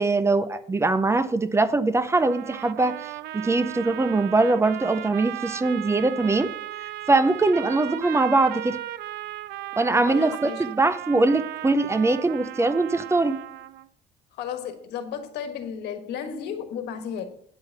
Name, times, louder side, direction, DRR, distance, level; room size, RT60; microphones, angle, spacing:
voice 1, 0.0-6.5 7.1-8.8 9.8-13.4, right 3 dB, 15° right, 0.6 m, -22 dB
sound 1, 2.2-13.9, right 14 dB, 75° right, 0.5 m, -36 dB
voice 2, 10.1-10.6 14.3-17.3, left 8 dB, 80° left, 1.4 m, -33 dB
9.0 x 4.7 x 6.6 m
cardioid pair, 110°, 17 cm